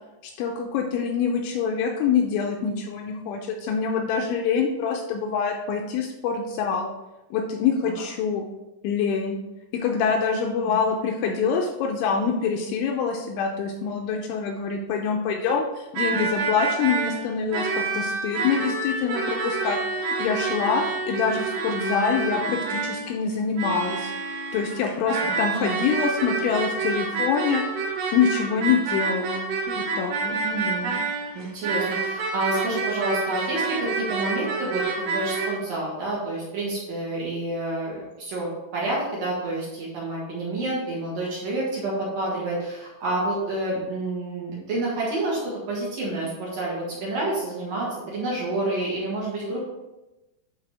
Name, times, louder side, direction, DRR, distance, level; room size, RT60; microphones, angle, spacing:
voice 1, 0.2-6.9 7.3-8.5 8.8-9.4 9.7-24.1 24.5-27.6 28.1-30.3, left 6 dB, 80° left, 2 dB, 2.8 m, -25 dB
sound 1, 15.9-35.5, right 4 dB, 90° right, 2.0 m, -28 dB
voice 2, 25.2-25.8 30.3-31.0 31.3-45.4 45.7-49.7, right 2 dB, 55° right, -6 dB, 2.7 m, -29 dB
12.0 x 4.1 x 3.4 m, 0.99 s
omnidirectional pair, 5.8 m